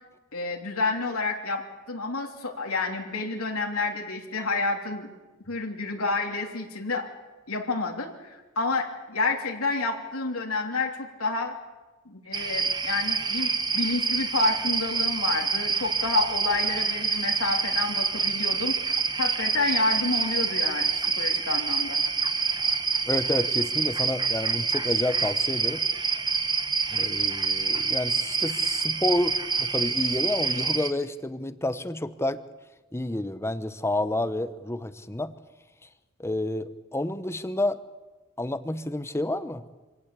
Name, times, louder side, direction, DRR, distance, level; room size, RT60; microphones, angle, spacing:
voice 1, 0.3-5.1 5.5-7.1 7.5-11.5 12.0-22.0, left 3 dB, 80° left, 2 dB, 3.1 m, -29 dB
sound 1, 12.3-30.9, right 5 dB, 20° right, 1.2 m, -27 dB
voice 2, 23.1-25.8 26.9-32.4 32.9-35.3 36.2-37.8 38.4-39.6, left 1 dB, 10° left, 13 dB, 0.9 m, -29 dB
25.5 x 17.5 x 8.4 m, 1.2 s
head